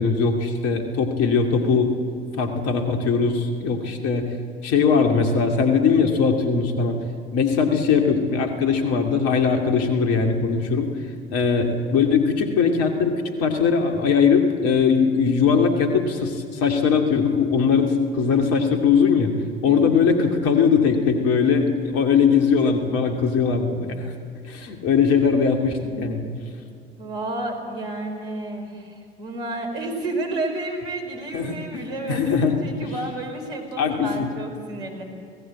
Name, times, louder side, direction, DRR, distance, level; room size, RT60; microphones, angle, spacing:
voice 1, 0.0-1.9 2.4-4.3 4.6-7.0 7.3-10.9 11.3-13.1 13.4-19.3 19.6-24.1 24.5-26.3 31.3-32.6 33.8-34.3, left 5 dB, 50° left, 5 dB, 2.5 m, -20 dB
voice 2, 19.7-20.1 27.0-35.0, right 2 dB, 70° right, 2 dB, 4.2 m, -31 dB
24.5 x 17.5 x 7.7 m, 2.5 s
figure-of-eight pair, 65°, 30 cm